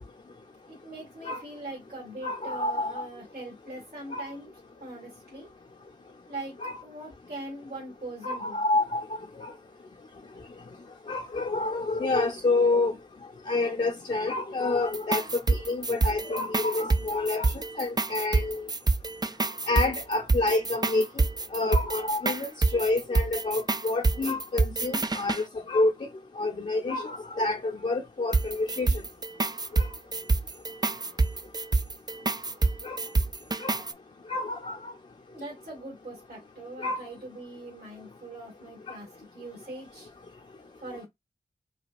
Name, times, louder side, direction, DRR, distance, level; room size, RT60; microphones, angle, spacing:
voice 1, 0.7-4.5 4.8-5.5 6.3-6.6 6.8-8.6 35.3-40.1 40.8-41.1, right 2 dB, 70° right, 2.1 m, -41 dB
voice 2, 2.2-3.0 4.1-4.2 6.6-6.8 8.2-9.0 9.4-9.5 11.1-12.9 13.5-18.6 19.7-21.2 21.5-25.9 26.4-28.9 29.8-29.9 32.8-33.0 33.6-33.8 34.3-34.9 36.8-37.0 38.9-39.0, left 2 dB, 45° left, 0.8 m, -28 dB
sound 1, 14.9-25.4 28.3-33.9, right 3 dB, 25° right, 0.4 m, -27 dB
4.9 x 2.3 x 2.5 m
cardioid pair, 40°, 17 cm